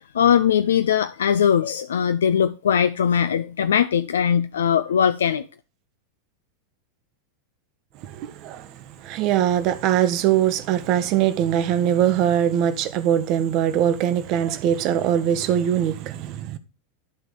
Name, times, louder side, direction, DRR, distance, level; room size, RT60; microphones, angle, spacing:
voice 1, 0.1-5.4, left 8 dB, 75° left, 0.3 m, -20 dB
voice 2, 8.0-16.6, right 10 dB, 45° right, 0.8 m, -22 dB
10.5 x 3.7 x 4.8 m
figure-of-eight pair, 90°, 0 cm